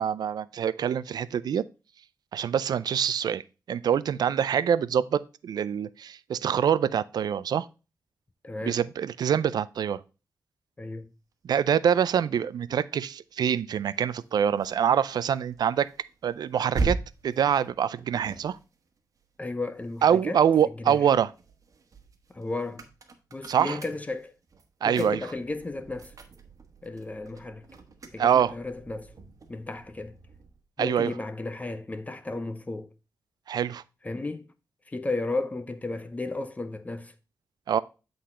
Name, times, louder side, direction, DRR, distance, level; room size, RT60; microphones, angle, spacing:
voice 1, 0.0-1.6 2.3-3.4 3.7-7.7 8.6-10.0 11.4-15.9 16.2-17.0 17.2-18.6 20.0-21.3 23.5-23.8 24.8-25.2 28.2-28.5 30.8-31.1 33.5-33.8 37.7-37.8, right 8 dB, 75° right, 0.4 m, -25 dB
voice 2, 8.4-8.8 10.8-11.1 19.4-20.4 20.8-21.0 22.3-22.9 23.3-24.3 24.8-26.1 26.8-27.6 28.1-29.1 29.5-30.2 30.8-32.9 34.0-34.5 34.9-37.1, left 2 dB, 20° left, 0.7 m, -34 dB
sound 1, 13.9-20.4 20.8-30.6, right 3 dB, 55° right, 1.2 m, -40 dB
8.4 x 4.0 x 4.3 m
cardioid pair, 95°, 7 cm